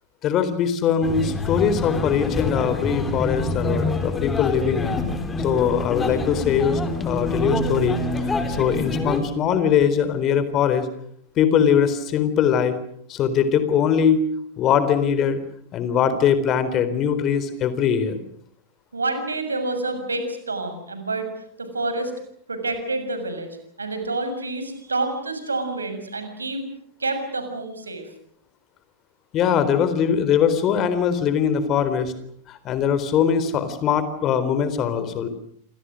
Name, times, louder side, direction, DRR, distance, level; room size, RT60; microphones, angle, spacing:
voice 1, 0.2-5.0 5.4-10.9 11.4-12.8 13.1-14.2 14.6-15.4 15.7-18.2 29.3-32.1 32.5-35.3, left 8 dB, 35° left, 12 dB, 3.9 m, -21 dB
sound 1, 1.0-9.2, left 2 dB, 15° left, 4.3 m, -26 dB
voice 2, 18.9-22.1 22.5-26.6 27.0-28.1, right 2 dB, 75° right, 8 dB, 6.8 m, -28 dB
29.5 x 27.0 x 6.4 m, 0.65 s
figure-of-eight pair, 90°, 0 cm